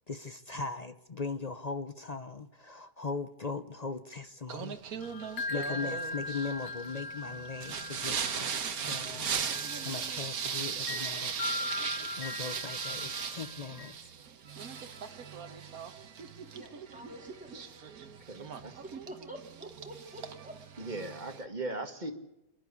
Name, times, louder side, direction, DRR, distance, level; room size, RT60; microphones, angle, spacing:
voice 1, 0.1-4.8 5.5-9.3 9.8-11.4 12.2-14.1, left 4 dB, 40° left, 0.6 m, -39 dB
Singing, 4.5-21.4, right 7 dB, 65° right, 1.6 m, -38 dB
sound 1, 5.0-13.9, left 3 dB, 80° left, 1.7 m, -40 dB
voice 2, 16.5-18.0 18.8-20.6, right 1 dB, 5° right, 3.5 m, -48 dB
voice 3, 18.3-18.8 20.8-22.1, right 2 dB, 25° right, 2.0 m, -38 dB
28.5 x 11.5 x 8.2 m
omnidirectional pair, 1.7 m